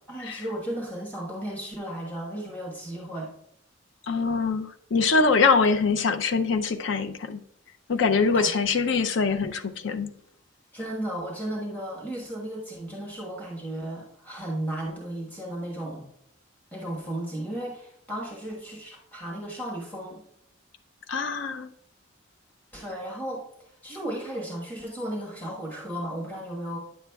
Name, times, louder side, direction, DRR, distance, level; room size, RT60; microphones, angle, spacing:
voice 1, 0.1-3.3 8.3-8.5 10.7-16.1 16.7-20.2 22.7-23.4 23.8-26.8, right 1 dB, 10° left, -3 dB, 1.3 m, -34 dB
voice 2, 4.1-7.4 7.9-10.1 21.1-21.7, left 4 dB, 65° left, 8 dB, 0.5 m, -24 dB
9.3 x 7.0 x 2.3 m, 0.72 s
head